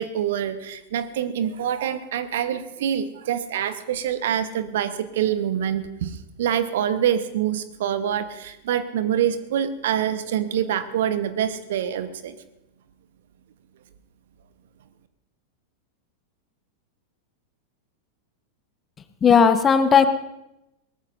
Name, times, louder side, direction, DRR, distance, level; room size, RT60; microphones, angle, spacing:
voice 1, 0.0-12.3, right 9 dB, 55° right, 12 dB, 1.0 m, -25 dB
voice 2, 19.2-20.1, left 6 dB, 20° left, 9 dB, 1.2 m, -15 dB
21.5 x 18.5 x 2.6 m, 0.89 s
figure-of-eight pair, 90°, 0 cm